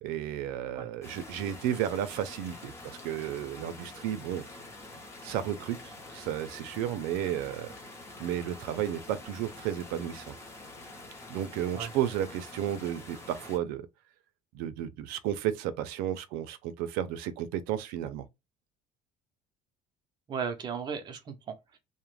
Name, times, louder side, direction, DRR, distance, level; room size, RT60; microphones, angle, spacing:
voice 1, 0.0-4.4 5.2-7.7 8.2-10.4 11.3-13.9 14.5-18.3, right 11 dB, 80° right, 0.5 m, -33 dB
sound 1, 1.0-13.6, left 2 dB, 15° left, 0.6 m, -47 dB
voice 2, 20.3-21.8, right 6 dB, 30° right, 0.5 m, -36 dB
2.4 x 2.0 x 3.1 m
cardioid pair, 160°, 15 cm